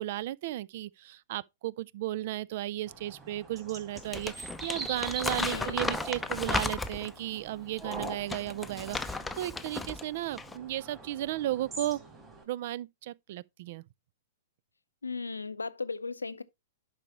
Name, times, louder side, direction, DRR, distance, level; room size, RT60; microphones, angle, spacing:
voice 1, 0.0-12.0 12.5-13.8, right 14 dB, 50° right, 0.3 m, -35 dB
sound 1, 2.9-12.4, right 3 dB, 20° right, 2.9 m, -44 dB
Crumpling crinkling, 4.0-7.2 7.8-10.0 10.3-10.6, left 3 dB, 5° left, 0.6 m, -34 dB
voice 2, 5.4-5.8 15.0-16.4, left 4 dB, 85° left, 0.5 m, -36 dB
11.0 x 4.8 x 3.0 m
figure-of-eight pair, 110°, 0 cm